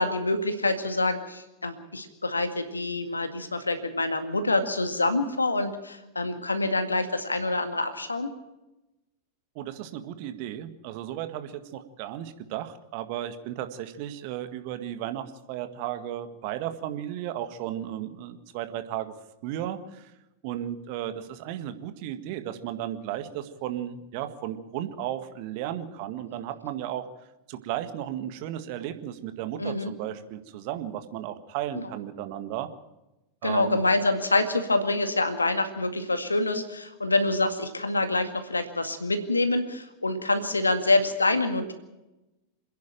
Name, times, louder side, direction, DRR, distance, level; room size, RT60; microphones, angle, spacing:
voice 1, 0.0-8.3 29.6-29.9 31.7-31.9 33.4-41.7, left 2 dB, 80° left, 8 dB, 2.0 m, -26 dB
voice 2, 9.6-19.1 19.4-20.1 20.4-27.1 27.5-32.7 33.4-33.9, right 11 dB, 45° right, 9 dB, 1.8 m, -34 dB
27.5 x 10.5 x 9.0 m, 0.99 s
figure-of-eight pair, 90°, 0 cm